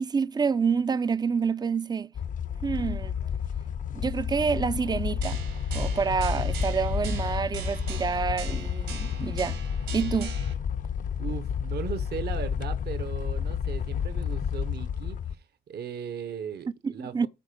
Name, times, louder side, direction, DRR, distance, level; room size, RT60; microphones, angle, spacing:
voice 1, 0.0-2.1 2.6-3.1 3.9-5.4 5.7-9.6 9.9-10.4 16.8-17.3, right 5 dB, 20° right, 0.4 m, -28 dB
sound 1, 2.1-15.3, left 8 dB, 40° left, 0.4 m, -31 dB
sound 2, 5.2-10.5, right 7 dB, 85° right, 3.0 m, -38 dB
voice 2, 11.2-17.3, right 7 dB, 55° right, 0.8 m, -37 dB
8.9 x 4.2 x 6.6 m
cardioid pair, 90°, 20 cm